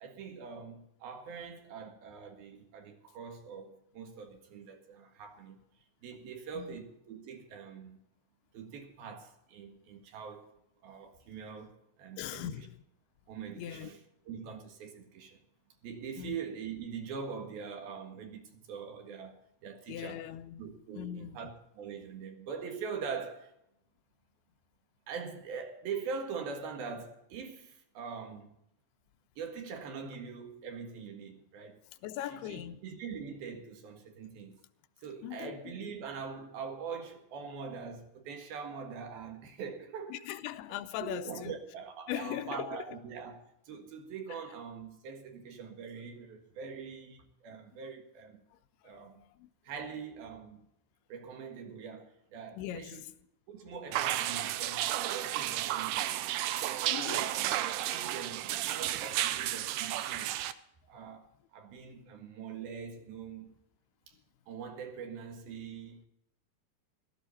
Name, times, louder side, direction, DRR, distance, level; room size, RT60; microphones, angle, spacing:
voice 1, 0.0-5.6 6.0-8.0 8.5-10.5 10.8-12.7 13.3-14.0 14.3-15.4 15.8-20.3 20.6-23.5 25.1-28.6 29.4-31.8 32.3-34.6 35.0-40.2 41.0-48.4 48.8-49.3 49.6-50.7 51.1-53.0 53.5-60.3 60.9-63.6 64.1-64.2 64.5-66.1, right 6 dB, 70° right, 3.6 m, -43 dB
voice 2, 12.2-12.8 13.6-13.9 16.2-16.4 19.9-21.4 32.0-32.9 35.2-35.9 40.1-41.5 42.1-42.8 44.3-44.4 47.7-47.8 48.5-49.5 52.5-53.1 53.7-53.8 56.9-57.3, left 12 dB, 85° left, 2.7 m, -40 dB
Water Dripping, 53.9-60.5, right 13 dB, 90° right, 1.8 m, -32 dB
16.0 x 13.5 x 4.3 m
omnidirectional pair, 4.5 m